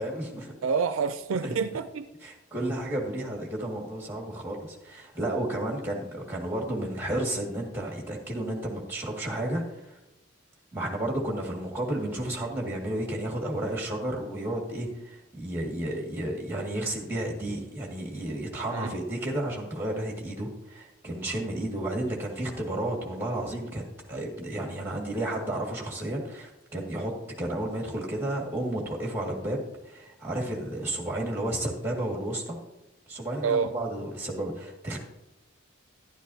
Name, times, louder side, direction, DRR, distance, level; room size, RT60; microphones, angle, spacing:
voice 1, 0.0-0.5 1.4-1.5 2.2-10.0 10.7-23.8 24.1-27.1 27.4-32.6 33.1-35.0, right 1 dB, 10° right, 2.0 m, -32 dB
voice 2, 0.6-2.1 18.7-19.0 33.4-33.7, right 5 dB, 75° right, 0.4 m, -28 dB
12.0 x 11.0 x 2.8 m
head